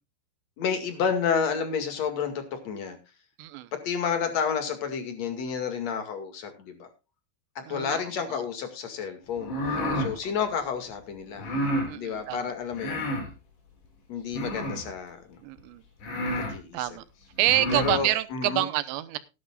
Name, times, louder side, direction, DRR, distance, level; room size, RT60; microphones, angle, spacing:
voice 1, 0.6-3.0 3.7-6.9 7.7-11.4 11.9-13.1 14.1-15.2 16.4-16.9 17.7-18.7, left 6 dB, 45° left, 7 dB, 2.7 m, -30 dB
voice 2, 3.4-3.7 7.7-8.0 8.3-8.4 9.8-10.3 11.9-12.5 15.4-15.8 16.7-17.0 17.4-19.2, right 15 dB, 85° right, 14 dB, 3.1 m, -28 dB
sound 1, 9.4-10.1 11.4-11.9 12.7-13.3 14.3-14.9 15.6-15.7 16.0-16.6 17.4-18.0, equal, 70° left, 5.5 m, -30 dB
17.0 x 11.0 x 2.4 m, 0.28 s
omnidirectional pair, 5.1 m